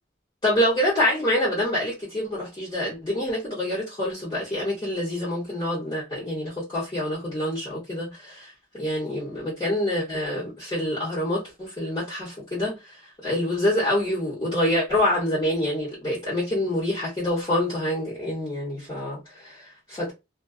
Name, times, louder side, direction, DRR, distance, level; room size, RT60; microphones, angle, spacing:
voice 1, 0.4-8.5 8.8-12.9 13.2-20.1, left 1 dB, 20° left, 1.1 m, -26 dB
2.4 x 2.3 x 2.3 m
head